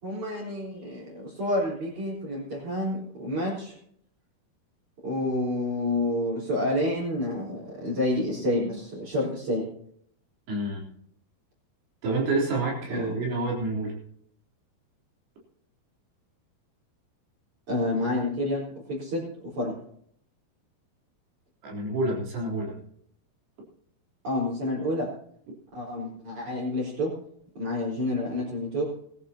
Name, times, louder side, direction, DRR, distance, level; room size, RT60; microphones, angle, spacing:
voice 1, 0.0-3.8 5.0-9.7 12.9-13.1 17.7-19.2 19.5-19.7 24.2-25.1 25.7-27.1 27.6-28.8, left 1 dB, 45° right, -7 dB, 5.6 m, -29 dB
voice 2, 10.5-10.8 12.0-13.9 21.6-22.8, right 2 dB, 75° right, -2 dB, 5.7 m, -28 dB
20.5 x 14.0 x 2.9 m, 0.67 s
omnidirectional pair, 4.8 m